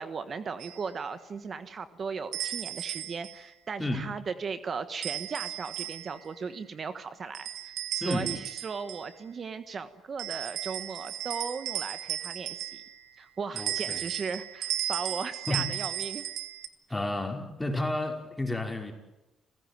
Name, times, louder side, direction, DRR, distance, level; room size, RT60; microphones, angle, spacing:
voice 1, 0.0-12.8 13.2-16.2, right 5 dB, 45° right, 11 dB, 1.3 m, -37 dB
sound 1, 0.6-0.8 2.3-3.4 5.0-6.3 7.3-9.1 10.2-13.1 13.6-16.7, right 12 dB, 85° right, 1.4 m, -35 dB
voice 2, 8.0-8.4 13.5-14.0 15.5-15.7 16.9-18.9, left 1 dB, 10° left, 3 dB, 5.3 m, -31 dB
30.0 x 16.0 x 9.4 m, 1.0 s
cardioid pair, 90°, 0 cm